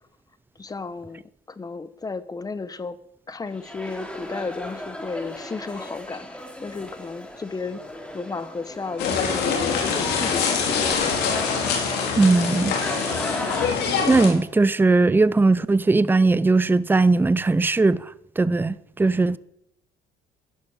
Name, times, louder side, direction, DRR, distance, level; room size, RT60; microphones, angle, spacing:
voice 1, 0.6-1.2 1.6-2.9 3.3-6.3 6.6-7.8 8.1-10.8, left 4 dB, 20° left, 1.2 m, -33 dB
sound 1, 3.5-13.7, left 1 dB, 5° left, 3.0 m, -35 dB
sound 2, 9.0-14.3, left 6 dB, 80° left, 4.9 m, -24 dB
voice 2, 12.2-12.7 14.1-18.0 18.4-19.4, right 3 dB, 10° right, 0.7 m, -19 dB
13.5 x 11.5 x 8.8 m
cardioid pair, 110°, 17 cm